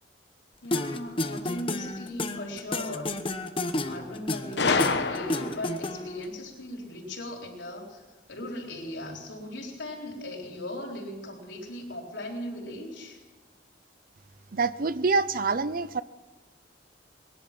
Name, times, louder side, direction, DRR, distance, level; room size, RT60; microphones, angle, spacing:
voice 1, 0.6-3.2 3.6-8.0 8.3-13.2, left 1 dB, 85° left, -1 dB, 4.1 m, -38 dB
sound 1, 0.7-6.2, left 2 dB, 30° left, 1.0 m, -31 dB
Gunshot gunfire, 4.6-5.8, left 4 dB, 70° left, 1.1 m, -26 dB
voice 2, 14.5-16.0, right 4 dB, 50° right, 15 dB, 0.6 m, -26 dB
20.5 x 11.5 x 5.9 m, 1.3 s
head